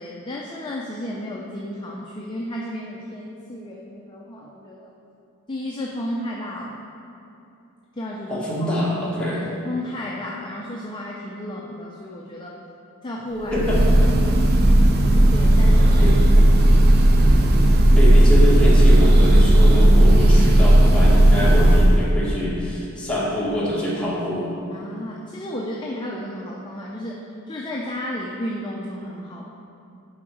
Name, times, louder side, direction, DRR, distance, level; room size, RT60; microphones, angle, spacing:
voice 1, 0.0-4.9 5.5-6.8 7.9-8.7 9.5-12.5 13.0-13.6 15.3-16.5 24.7-29.4, left 1 dB, 20° left, -3 dB, 0.5 m, -33 dB
voice 2, 8.3-9.4 13.5-14.1 16.0-16.5 18.0-24.5, left 1 dB, 5° left, -7 dB, 1.5 m, -25 dB
Breathing / Bird, 13.5-22.0, right 1 dB, 45° right, 0.6 m, -14 dB
9.9 x 3.9 x 4.8 m, 2.7 s
head